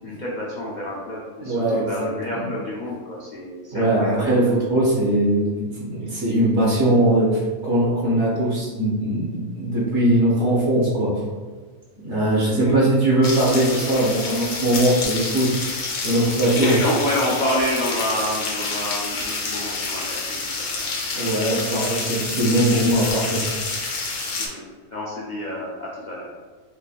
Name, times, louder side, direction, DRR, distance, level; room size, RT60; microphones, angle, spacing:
voice 1, 0.0-4.6 6.0-6.1 12.5-12.8 16.6-20.9 21.2-21.7 24.4-24.6 24.9-26.3, equal, 50° left, -5 dB, 0.5 m, -28 dB
voice 2, 1.4-2.4 3.7-11.1 12.0-15.5 16.0-16.7 21.1-23.4, right 1 dB, 50° right, -6 dB, 1.5 m, -20 dB
sound 1, 13.2-24.5, left 3 dB, 90° left, 1.3 m, -28 dB
5.2 x 3.3 x 2.4 m, 1.5 s
omnidirectional pair, 1.6 m